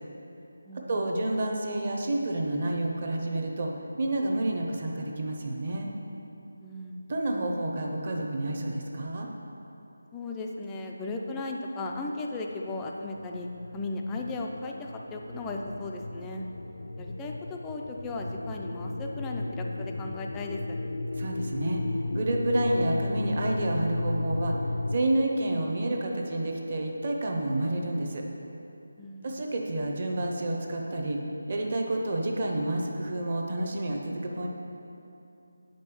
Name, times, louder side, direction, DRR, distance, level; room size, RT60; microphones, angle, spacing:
voice 1, 0.9-3.7 4.0-5.9 7.1-9.3 21.2-24.6 24.9-28.2 29.2-31.2 31.5-34.5, right 1 dB, 30° right, 1 dB, 0.8 m, -29 dB
voice 2, 6.6-7.0 10.1-13.5 13.7-16.5 17.0-20.8 29.0-29.4, left 2 dB, 5° left, 1 dB, 0.3 m, -36 dB
sound 1, 13.0-25.0, left 2 dB, 75° left, 0.4 m, -34 dB
8.3 x 5.3 x 6.9 m, 2.9 s
figure-of-eight pair, 180°, 0 cm